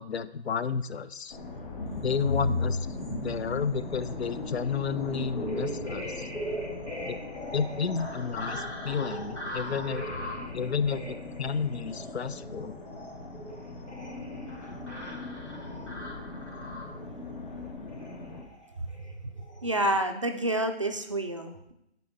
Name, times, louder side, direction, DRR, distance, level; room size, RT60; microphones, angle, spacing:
voice 1, 0.0-1.4 2.0-2.8 3.1-6.3 7.1-7.2 7.5-10.1 10.5-12.7, left 6 dB, 70° left, 14 dB, 0.6 m, -31 dB
sound 1, 1.3-18.4, left 2 dB, 45° left, 1.3 m, -41 dB
sound 2, 1.8-17.2 17.9-18.2 18.4-18.7 18.9-19.1 19.4-19.6, left 1 dB, 90° left, 2.4 m, -37 dB
voice 2, 19.6-21.7, right 1 dB, 30° right, 5 dB, 0.4 m, -29 dB
6.3 x 4.3 x 5.5 m, 0.82 s
figure-of-eight pair, 145°, 34 cm